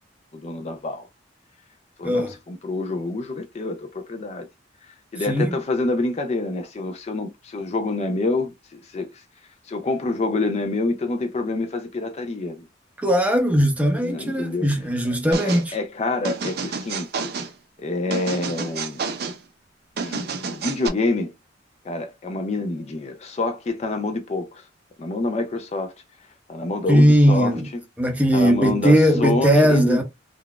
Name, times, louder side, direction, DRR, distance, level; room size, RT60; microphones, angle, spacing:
voice 1, 0.3-1.1 2.0-4.5 4.9-9.2 9.6-12.7 14.0-14.7 15.4-17.1 17.8-19.0 20.0-21.3 21.8-24.6 25.0-25.9 26.5-27.5 28.3-30.0, left 2 dB, 35° left, 0.4 m, -27 dB
voice 2, 2.0-2.3 5.3-5.6 13.0-15.8 26.9-27.7 28.0-30.0, equal, 10° right, 0.6 m, -18 dB
sound 1, 15.3-15.7 16.2-17.5 18.1-19.4 20.0-20.9, right 5 dB, 55° right, 0.5 m, -29 dB
3.8 x 2.3 x 2.2 m
head